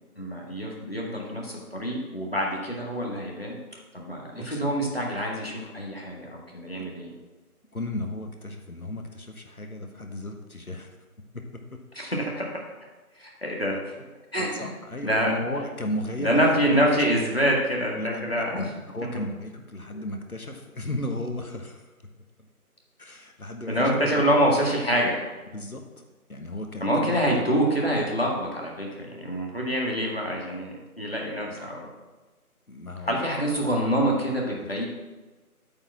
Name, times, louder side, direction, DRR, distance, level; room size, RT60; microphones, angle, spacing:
voice 1, 0.2-3.6 3.9-7.2 11.9-12.5 13.1-13.9 14.3-14.7 15.0-15.3 16.2-18.8 19.0-19.1 19.9-20.0 23.7-25.2 26.8-31.9 33.0-34.8, equal, 40° left, -2 dB, 1.8 m, -26 dB
voice 2, 4.3-4.6 6.8-6.9 7.7-11.0 11.3-11.4 13.7-13.8 14.4-16.8 18.0-21.9 23.0-24.3 25.5-25.8 26.3-27.5 31.4-31.7 32.7-33.2 34.7-34.8, left 1 dB, 70° left, 4 dB, 1.3 m, -35 dB
8.6 x 4.6 x 7.2 m, 1.2 s
figure-of-eight pair, 175°, 45 cm